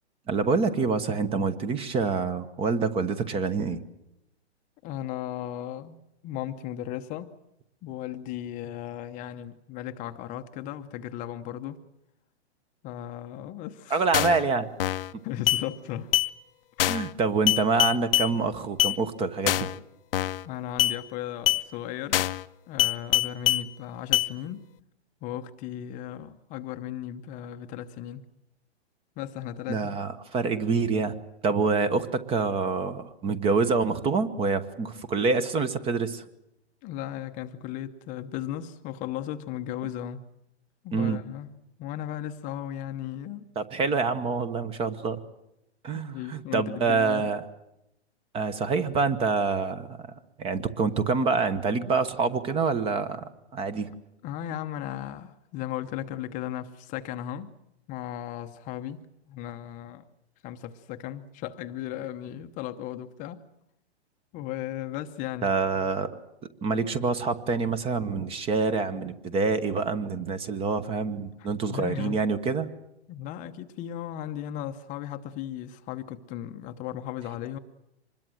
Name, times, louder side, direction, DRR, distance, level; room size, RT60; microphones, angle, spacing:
voice 1, 0.3-3.8 13.9-14.7 16.9-19.7 29.7-31.1 31.4-36.2 40.9-41.2 43.5-45.2 45.8-47.4 48.3-50.1 50.4-53.9 65.4-66.1 66.6-72.7, right 4 dB, 15° right, 1.1 m, -26 dB
voice 2, 4.8-7.3 7.8-11.8 12.8-14.1 15.2-16.1 20.4-22.2 22.7-24.6 25.2-28.2 29.2-30.0 36.8-40.3 40.8-43.4 45.9-47.3 54.2-57.5 57.9-60.1 60.4-63.4 64.3-65.5 71.4-72.2 73.1-77.6, left 11 dB, 25° left, 0.9 m, -36 dB
sound 1, 14.1-14.4 14.8-15.1 15.5-15.6 16.1-16.3 16.8-17.1 17.5-18.3 18.8-19.0 19.5-19.8 20.1-20.4 20.8-21.0 21.5-21.6 22.1-22.4 22.8-23.6 24.1-24.3, left 13 dB, 55° left, 0.8 m, -24 dB
25.5 x 21.0 x 7.7 m
hypercardioid pair, 140°, 33 cm